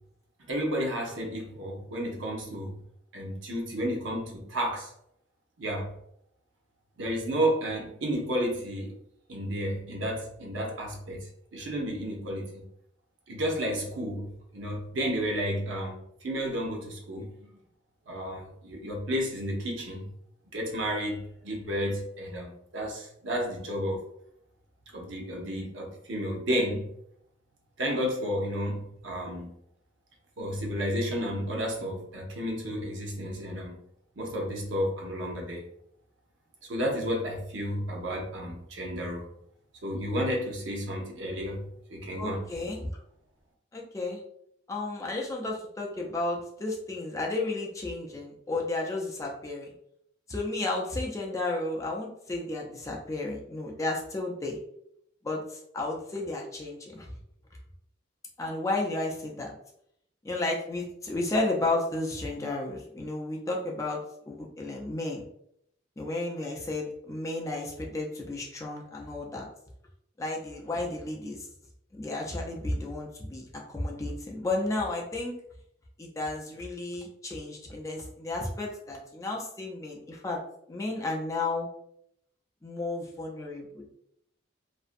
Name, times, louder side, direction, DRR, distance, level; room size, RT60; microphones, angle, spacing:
voice 1, 0.5-2.8 3.1-4.9 5.6-5.9 7.0-8.9 9.3-12.6 13.3-17.5 18.1-20.1 20.5-24.0 24.9-26.9 27.8-29.6 30.4-33.8 34.2-35.6 36.7-39.3 39.8-42.5, equal, 80° right, 0 dB, 0.6 m, -32 dB
voice 2, 42.2-42.9 43.7-44.2 44.7-49.7 50.3-54.6 55.2-57.1 58.4-59.5 60.2-65.2 66.0-69.5 70.2-71.5 71.9-75.4 76.0-80.4 80.7-81.7 82.6-83.9, left 2 dB, 15° left, -1 dB, 0.3 m, -33 dB
2.5 x 2.1 x 2.5 m, 0.73 s
head